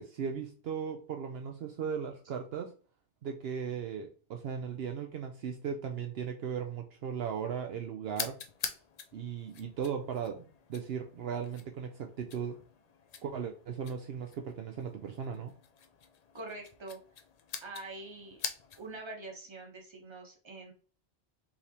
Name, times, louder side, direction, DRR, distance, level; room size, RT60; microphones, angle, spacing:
voice 1, 0.0-2.7 3.2-8.4 9.1-12.6 13.2-15.5, right 7 dB, 70° right, 5 dB, 0.8 m, -37 dB
sound 1, 8.1-19.0, left 6 dB, 50° left, 0.5 m, -45 dB
voice 2, 16.3-17.0 17.6-18.4 18.8-20.7, right 2 dB, 25° right, 2 dB, 1.0 m, -44 dB
4.7 x 3.3 x 2.9 m, 0.38 s
omnidirectional pair, 1.1 m